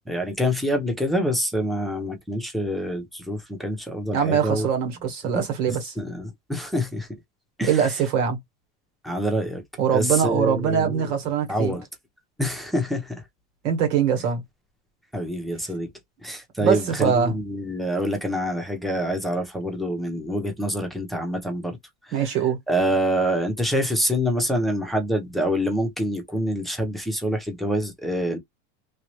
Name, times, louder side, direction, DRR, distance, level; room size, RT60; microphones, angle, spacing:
voice 1, 0.1-4.7 5.2-7.1 7.6-7.9 9.0-9.6 9.9-11.1 11.5-11.9 12.4-13.2 15.1-15.9 16.2-21.8 22.0-22.2 22.7-28.4, equal, ahead, 1.1 m, -26 dB
voice 2, 4.1-5.9 7.7-8.4 9.8-11.8 13.6-14.4 16.6-17.3 22.1-22.6, right 7 dB, 80° right, 1.8 m, -22 dB
3.1 x 2.7 x 3.2 m
supercardioid pair, 120°, 37 cm